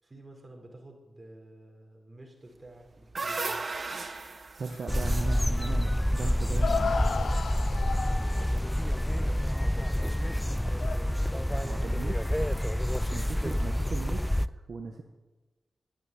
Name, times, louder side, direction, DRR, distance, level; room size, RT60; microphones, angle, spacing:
voice 1, 0.0-3.6 8.2-11.6 11.9-12.2, right 1 dB, 30° right, 1 dB, 4.5 m, -50 dB
sound 1, 2.7-6.9, right 3 dB, 50° right, 1.4 m, -37 dB
voice 2, 4.5-7.0 11.5-12.2 13.1-14.3 14.7-15.0, right 4 dB, 65° right, 4 dB, 1.2 m, -37 dB
sound 2, 4.7-5.2 5.8-5.9 6.6-8.7 10.8-11.0, left 5 dB, 70° left, 0.8 m, -33 dB
sound 3, 4.9-14.5, equal, 5° left, 0.5 m, -28 dB
11.5 x 9.0 x 8.6 m, 1.2 s
cardioid pair, 45°, 0 cm